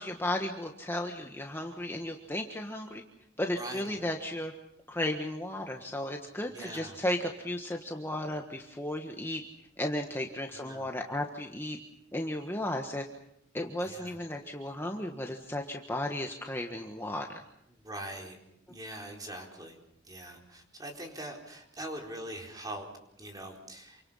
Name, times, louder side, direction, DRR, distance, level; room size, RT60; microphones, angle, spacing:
voice 1, 0.0-3.0 3.4-4.5 4.9-9.4 9.8-11.8 12.1-13.0 13.5-17.4, left 1 dB, 10° left, 3 dB, 1.5 m, -34 dB
voice 2, 3.5-4.0 6.5-7.0 10.5-10.9 13.8-14.2 17.7-18.4 18.7-19.8 20.0-22.9 23.2-24.0, right 1 dB, 20° right, 2 dB, 4.2 m, -42 dB
28.5 x 25.0 x 5.7 m, 0.76 s
head